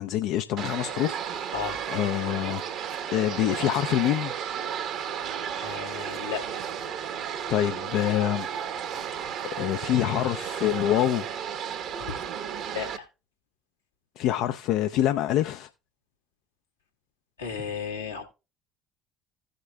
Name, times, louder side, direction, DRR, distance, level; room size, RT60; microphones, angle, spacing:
voice 1, 0.0-1.4 1.9-2.6 3.1-4.3 7.5-8.5 9.6-11.3 14.2-15.7, left 12 dB, 60° left, 0.4 m, -25 dB
sound 1, 0.6-13.0, right 8 dB, 55° right, 0.9 m, -33 dB
voice 2, 5.6-6.4 12.1-12.2 12.7-13.0 17.4-18.2, left 6 dB, 85° left, 1.3 m, -34 dB
16.0 x 6.6 x 2.2 m
figure-of-eight pair, 55°, 0 cm